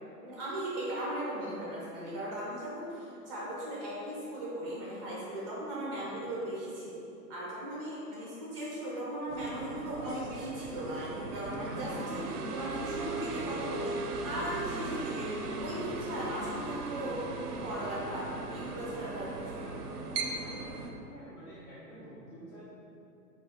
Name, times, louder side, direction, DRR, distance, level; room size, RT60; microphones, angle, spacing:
voice 1, 0.2-7.0 7.3-14.0 14.2-17.2 17.6-19.7, right 1 dB, 25° right, -7 dB, 0.3 m, -38 dB
sound 1, 9.3-20.9, right 3 dB, 75° right, 0.5 m, -38 dB
voice 2, 21.1-22.6, right 1 dB, 65° left, -11 dB, 1.0 m, -49 dB
3.2 x 2.2 x 3.8 m, 2.8 s
figure-of-eight pair, 120°, 47 cm